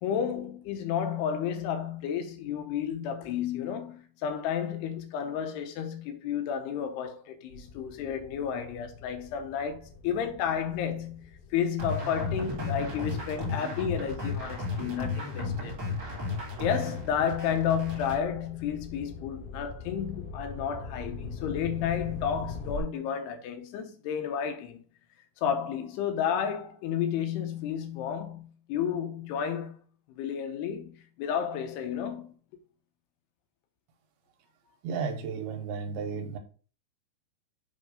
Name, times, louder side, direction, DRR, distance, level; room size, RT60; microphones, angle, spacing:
voice 1, 0.0-15.8 16.6-24.8 25.4-29.8 30.1-32.3, left 8 dB, 85° left, 3.0 m, -32 dB
sound 1, 7.5-14.2 14.8-22.8, left 4 dB, 55° left, 2.9 m, -44 dB
sound 2, 11.8-18.2, left 3 dB, 40° right, 1.5 m, -34 dB
voice 2, 34.7-36.4, right 5 dB, 80° right, 2.8 m, -34 dB
7.4 x 3.1 x 5.1 m
omnidirectional pair, 4.6 m